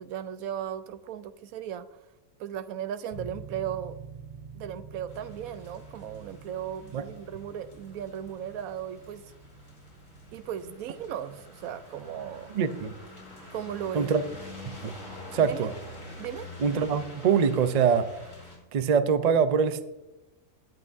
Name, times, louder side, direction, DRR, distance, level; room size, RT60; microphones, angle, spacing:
voice 1, 0.0-1.9 2.4-4.0 4.5-9.3 10.3-12.5 13.5-14.1 15.4-15.7 16.2-16.5, right 9 dB, 90° right, 12 dB, 1.1 m, -36 dB
sound 1, 3.1-13.9, right 4 dB, 25° right, 1.4 m, -48 dB
sound 2, 5.1-18.6, left 2 dB, 80° left, 4.4 m, -47 dB
voice 2, 12.5-12.9 13.9-14.2 14.7-14.9 15.3-15.7 16.6-18.1 18.7-19.8, right 6 dB, 50° right, 11 dB, 0.5 m, -24 dB
19.5 x 8.5 x 2.6 m, 1.0 s
omnidirectional pair, 1.4 m